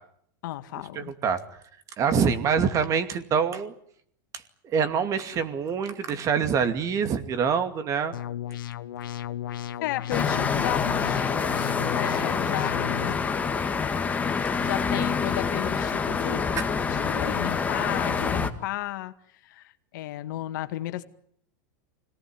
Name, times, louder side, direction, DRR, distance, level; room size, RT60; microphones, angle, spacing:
voice 1, 0.4-1.1 9.8-13.4 14.6-19.1 19.4-21.0, left 15 dB, 65° left, 9 dB, 2.1 m, -33 dB
voice 2, 0.9-1.4 2.0-3.7 4.6-8.1 16.6-16.7, right 6 dB, 30° right, 10 dB, 2.5 m, -25 dB
sound 1, 8.1-13.1, left 11 dB, 90° left, 1.3 m, -35 dB
sound 2, 10.1-18.5, left 5 dB, 15° left, 1.9 m, -26 dB
25.5 x 18.5 x 9.8 m, 0.68 s
supercardioid pair, 135°, 11 cm